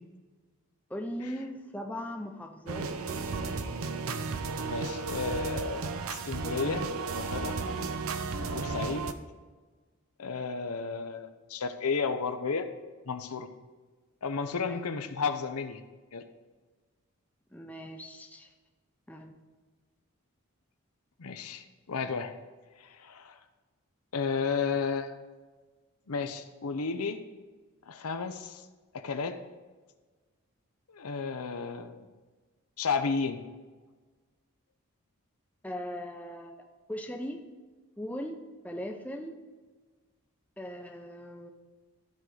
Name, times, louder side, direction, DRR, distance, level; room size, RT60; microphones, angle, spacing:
voice 1, 0.9-3.3 14.6-14.8 17.5-18.5 19.1-19.3 35.6-37.4 38.0-38.4 38.6-39.4 40.6-41.5, equal, 5° left, 3 dB, 0.6 m, -39 dB
sound 1, 2.7-9.1, right 4 dB, 70° right, 0.6 m, -34 dB
voice 2, 4.6-5.9 6.2-6.8 7.1-7.5 8.5-9.1 10.2-12.7 13.1-13.5 14.2-15.8 16.1-16.2 21.2-22.3 22.8-23.4 24.1-25.2 26.1-27.2 27.9-28.6 28.9-29.4 30.9-32.1 32.8-33.4, left 5 dB, 85° left, 8 dB, 0.7 m, -32 dB
14.0 x 4.8 x 3.9 m, 1.4 s
head